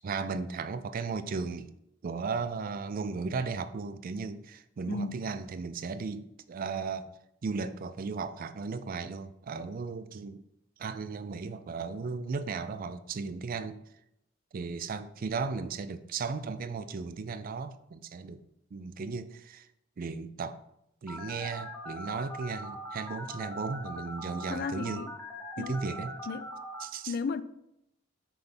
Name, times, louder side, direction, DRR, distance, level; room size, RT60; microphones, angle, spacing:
voice 1, 0.0-1.7 2.0-7.1 7.4-10.4 10.8-13.8 14.5-18.4 18.7-19.7 20.0-20.6 21.0-25.0 25.6-26.1 26.8-27.1, right 4 dB, 45° right, 0.4 m, -36 dB
voice 2, 4.9-5.2 24.5-25.1 25.6-25.8 26.3-26.5 27.1-27.4, left 5 dB, 50° left, 0.3 m, -34 dB
Telephone, 21.1-26.8, equal, 10° left, 0.7 m, -41 dB
5.9 x 3.4 x 5.4 m
head